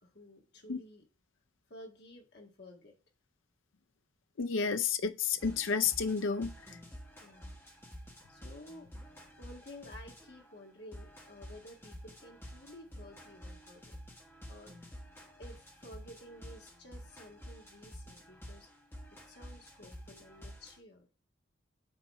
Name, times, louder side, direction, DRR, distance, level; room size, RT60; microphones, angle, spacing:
voice 1, 0.0-1.1 1.7-2.9 7.2-7.5 8.3-8.9 9.4-14.0 14.5-15.1 15.4-18.7 19.1-21.1, left 1 dB, 55° left, 1.7 m, -53 dB
voice 2, 4.4-6.8, left 6 dB, 80° left, 0.5 m, -31 dB
sound 1, 5.4-10.4 10.9-20.8, equal, 10° left, 1.3 m, -50 dB
7.5 x 4.0 x 4.6 m
head